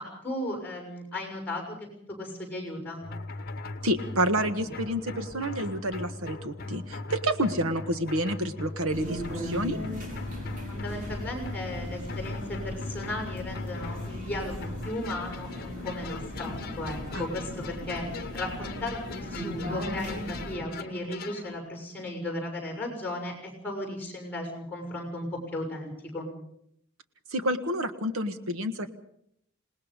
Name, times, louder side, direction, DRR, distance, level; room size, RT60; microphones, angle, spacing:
voice 1, 0.0-1.9 2.2-3.0 10.7-26.3, left 1 dB, 10° left, 2 dB, 6.7 m, -36 dB
sound 1, 3.0-21.5, left 3 dB, 50° left, 1.2 m, -40 dB
voice 2, 3.8-9.8 17.1-17.3 27.3-28.9, right 1 dB, 85° right, 10 dB, 1.6 m, -29 dB
sound 2, 8.9-20.6, left 1 dB, 40° right, 5.1 m, -38 dB
27.0 x 19.0 x 5.3 m, 0.72 s
head